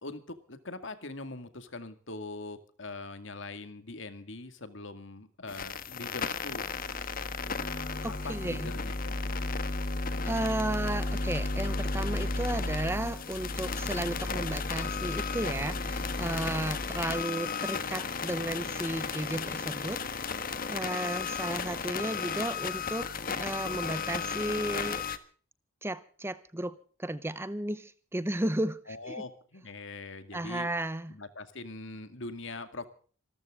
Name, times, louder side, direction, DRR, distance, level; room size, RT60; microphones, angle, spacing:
voice 1, 0.0-6.7 8.1-9.4 28.9-30.7 31.1-32.8, left 3 dB, 65° left, 10 dB, 2.2 m, -42 dB
sound 1, 5.5-25.2, left 4 dB, 45° left, 1.3 m, -33 dB
sound 2, 7.6-10.1 10.4-17.7, right 1 dB, 30° right, 6.5 m, -62 dB
voice 2, 8.0-8.7 10.2-20.0 20.7-25.0 25.8-29.2 30.3-31.2, right 1 dB, 10° right, 15 dB, 0.7 m, -34 dB
26.5 x 14.0 x 3.7 m, 0.43 s
head